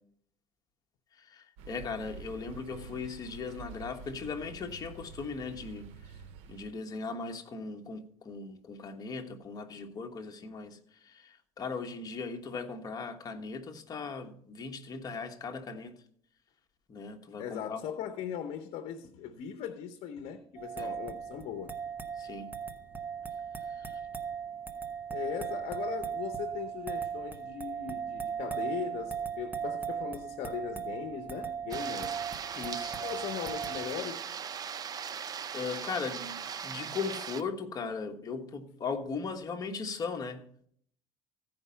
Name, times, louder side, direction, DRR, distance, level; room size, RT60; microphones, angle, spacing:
voice 1, 1.2-5.9 6.5-16.0 16.9-17.8 20.8-20.9 22.2-22.5 23.8-24.0 32.6-32.9 35.5-40.4, left 4 dB, 35° left, 1.3 m, -38 dB
sound 1, 1.6-6.8, right 5 dB, 75° right, 0.8 m, -48 dB
voice 2, 17.4-21.7 25.1-32.2 33.0-34.3, left 8 dB, 65° left, 0.9 m, -39 dB
sound 2, 20.6-33.9, right 7 dB, 15° right, 1.1 m, -37 dB
sound 3, 31.7-37.4, right 7 dB, 35° right, 0.6 m, -39 dB
15.5 x 5.2 x 5.6 m
cardioid pair, 105°, 11 cm